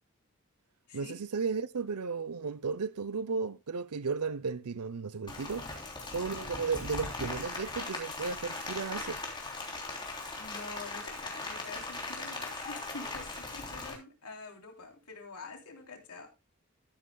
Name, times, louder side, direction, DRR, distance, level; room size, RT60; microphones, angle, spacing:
voice 1, 0.9-5.7 6.1-9.2, right 5 dB, 80° right, 0.6 m, -34 dB
Rain, 5.3-13.9, left 3 dB, 20° left, 3.4 m, -39 dB
voice 2, 10.3-16.3, left 3 dB, 80° left, 3.4 m, -46 dB
13.0 x 11.5 x 2.3 m
head